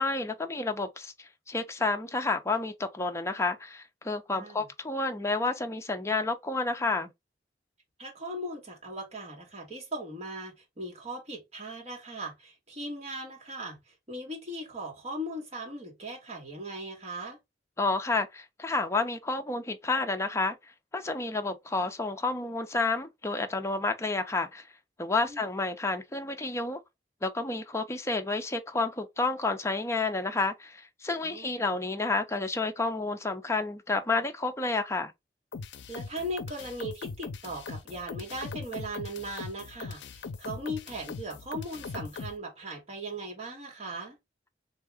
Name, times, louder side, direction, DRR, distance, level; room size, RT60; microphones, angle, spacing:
voice 1, 0.0-7.1 17.8-20.6 20.9-24.7 25.0-26.8 27.2-35.1, left 3 dB, 15° left, 0.5 m, -30 dB
voice 2, 4.3-4.7 8.0-17.4 25.2-25.5 31.2-31.6 35.9-44.2, right 1 dB, 40° right, 1.8 m, -38 dB
sound 1, 35.5-42.4, left 4 dB, 85° left, 0.5 m, -40 dB
3.7 x 2.8 x 3.5 m
head